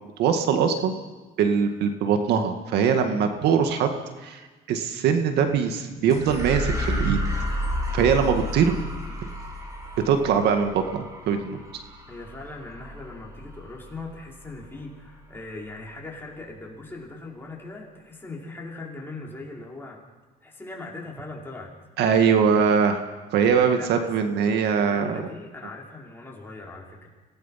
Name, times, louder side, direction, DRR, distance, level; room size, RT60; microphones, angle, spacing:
voice 1, 0.2-0.9 1.4-3.9 4.2-7.2 7.9-8.8 10.1-11.8 22.0-23.0 23.3-25.2, right 6 dB, 80° right, 6 dB, 2.0 m, -22 dB
sound 1, 6.1-14.7, equal, 20° right, 6.2 m, -32 dB
voice 2, 12.1-20.0 20.4-21.7 23.7-24.1 24.9-27.1, left 2 dB, 15° left, -3 dB, 5.4 m, -40 dB
26.5 x 18.5 x 5.9 m, 1.3 s
cardioid pair, 110°, 17 cm